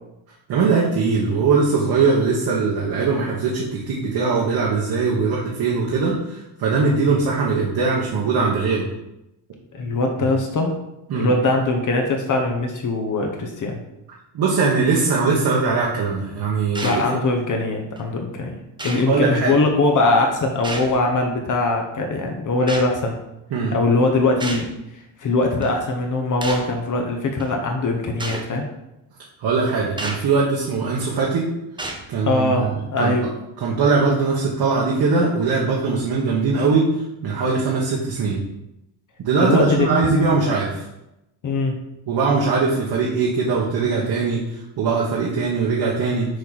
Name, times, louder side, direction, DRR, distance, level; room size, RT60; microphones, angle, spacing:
voice 1, 0.5-8.8 11.1-11.3 14.3-17.2 19.1-19.6 23.5-23.7 29.4-31.5 32.1-32.4 33.0-33.1 33.6-36.9 37.2-38.4 39.2-40.9 42.1-46.3, right 4 dB, 55° right, -3 dB, 1.2 m, -21 dB
voice 2, 9.7-10.7 11.1-13.8 16.8-18.6 18.8-23.2 23.7-28.7 32.2-33.3 39.4-40.1 41.4-41.8, left 2 dB, 40° left, 2 dB, 0.9 m, -21 dB
sound 1, 16.7-17.1 18.0-18.1 18.8-19.1 20.6-21.1 22.7-22.9 24.4-24.7 25.6-25.8 26.4-26.7 27.4-27.5 28.2-28.5 30.0-30.3 31.0-31.2 31.8-32.1, right 2 dB, 10° right, 0.7 m, -31 dB
6.6 x 4.2 x 4.0 m, 0.89 s
cardioid pair, 135°, 46 cm